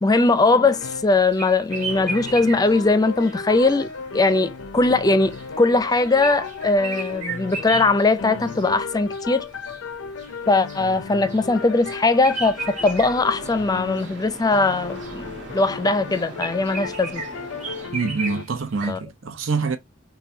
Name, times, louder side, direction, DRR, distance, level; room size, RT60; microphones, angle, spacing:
voice 1, 0.0-3.9 4.1-9.5 10.5-17.2 18.9-19.0, left 3 dB, 20° left, 0.4 m, -20 dB
sound 1, 0.5-1.2 1.7-14.2 14.5-18.4, left 4 dB, 85° left, 0.5 m, -35 dB
sound 2, 0.7-18.9, right 3 dB, 40° right, 1.5 m, -36 dB
sound 3, 2.3-17.9, right 3 dB, 65° right, 2.3 m, -45 dB
voice 2, 17.9-19.8, right 4 dB, 85° right, 0.8 m, -25 dB
5.9 x 2.3 x 2.6 m
head